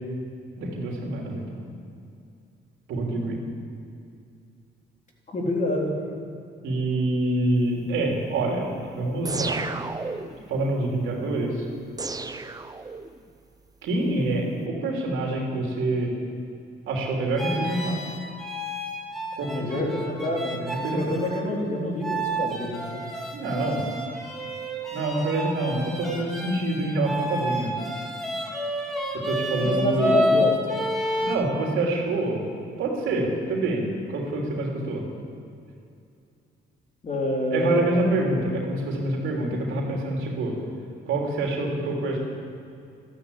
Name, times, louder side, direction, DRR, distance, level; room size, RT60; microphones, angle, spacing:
voice 1, 0.6-1.6 2.9-3.4 6.6-8.7 8.9-9.6 10.5-11.6 13.8-16.1 16.9-18.0 19.4-19.5 19.7-19.9 20.6-21.1 23.3-23.9 24.9-27.7 29.1-30.2 31.2-32.5 32.8-35.0 37.5-40.5 41.1-42.2, right 2 dB, 85° right, -1 dB, 3.3 m, -26 dB
voice 2, 5.3-6.0 19.5-20.6 20.8-23.0 29.5-30.7 37.0-37.9, left 1 dB, 40° left, -1 dB, 3.8 m, -27 dB
sound 1, 9.2-10.5 12.0-13.3, right 3 dB, 20° right, 0.7 m, -32 dB
sound 2, 17.3-21.4 22.0-31.4, equal, ahead, 2.9 m, -29 dB
13.0 x 13.0 x 8.5 m, 2.5 s
cardioid pair, 90°, 20 cm